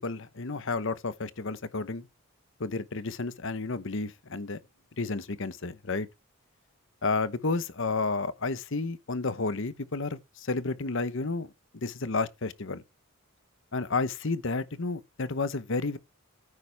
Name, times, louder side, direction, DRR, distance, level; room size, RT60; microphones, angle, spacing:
voice 1, 0.0-2.1 2.6-4.6 5.0-6.1 7.0-11.5 11.7-12.8 13.7-16.0, left 3 dB, 60° left, 0.9 m, -31 dB
9.8 x 9.3 x 3.4 m
head